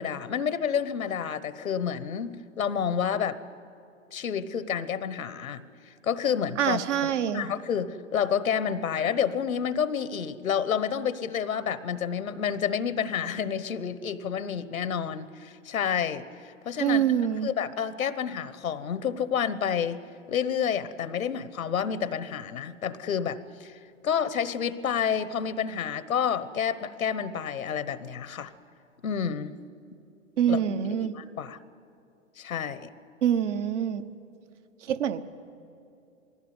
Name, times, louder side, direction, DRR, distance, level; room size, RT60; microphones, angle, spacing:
voice 1, 0.0-3.4 4.1-5.7 6.0-16.3 16.6-17.0 17.4-20.0 20.3-28.5 29.0-29.5 30.5-30.6 30.9-31.6 32.4-32.9, left 7 dB, 85° left, 14 dB, 1.1 m, -29 dB
voice 2, 6.6-7.5 16.8-17.5 30.4-31.2 33.2-34.0 34.8-35.2, right 9 dB, 60° right, 9 dB, 1.2 m, -25 dB
19.5 x 16.0 x 9.5 m, 2.6 s
hypercardioid pair, 120°, 40 cm